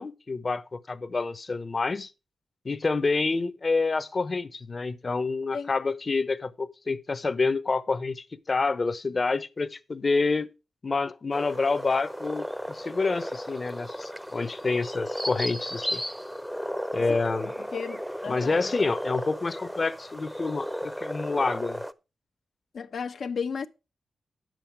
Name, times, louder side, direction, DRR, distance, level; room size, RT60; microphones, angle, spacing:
voice 1, 0.0-2.1 2.6-10.5 10.8-16.0 16.9-17.5 18.3-21.8, left 3 dB, 40° left, 1.0 m, -28 dB
sound 1, 11.3-21.9, equal, ahead, 0.7 m, -34 dB
voice 2, 17.0-18.6 22.7-23.7, left 6 dB, 75° left, 1.0 m, -34 dB
10.0 x 7.7 x 4.9 m
cardioid pair, 80°, 0 cm